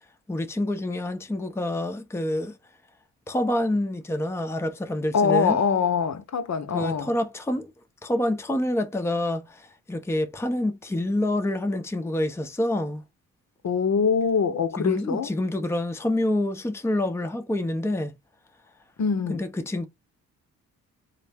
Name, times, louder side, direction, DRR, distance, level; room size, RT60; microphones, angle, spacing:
voice 1, 0.3-2.6 3.3-5.6 6.7-7.7 8.0-13.0 14.8-18.2 19.3-19.9, left 1 dB, 5° left, 0.7 m, -27 dB
voice 2, 5.1-7.1 13.6-15.3 19.0-19.4, left 6 dB, 45° left, 0.8 m, -23 dB
3.9 x 2.2 x 3.4 m
supercardioid pair, 50°, 38 cm